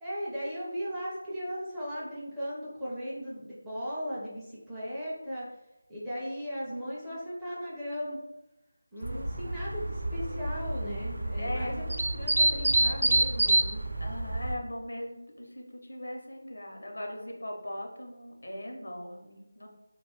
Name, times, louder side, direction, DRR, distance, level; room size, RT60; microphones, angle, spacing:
voice 1, 0.0-5.5 5.9-8.2 8.9-13.8, equal, 5° right, -11 dB, 0.4 m, -37 dB
voice 2, 2.9-3.5 6.7-6.8 7.1-7.2 9.1-9.5 11.4-11.9 14.0-19.7, left 1 dB, 80° left, 1 dB, 0.7 m, -40 dB
sound 1, 9.0-14.5, right 1 dB, 75° right, 0.4 m, -28 dB
2.4 x 2.2 x 3.2 m, 0.93 s
figure-of-eight pair, 175°, 0 cm